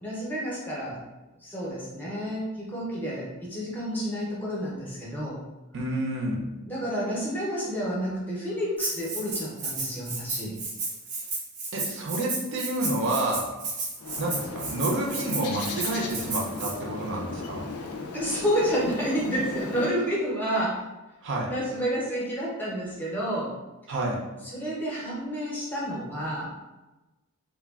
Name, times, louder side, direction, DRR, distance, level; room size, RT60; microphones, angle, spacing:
voice 1, 0.0-1.0 1.4-5.4 6.7-10.5 18.1-20.8 21.5-23.5 24.4-26.5, equal, 10° left, -6 dB, 0.6 m, -30 dB
voice 2, 5.7-6.4 11.7-13.4 14.2-17.6 21.2-21.5 23.9-24.2, right 1 dB, 55° right, -1 dB, 0.5 m, -29 dB
Rattle (instrument), 8.8-16.7, right 3 dB, 90° right, 0.7 m, -33 dB
Bird, 14.0-19.9, left 4 dB, 80° left, 0.4 m, -37 dB
3.2 x 2.2 x 2.3 m, 1.1 s
head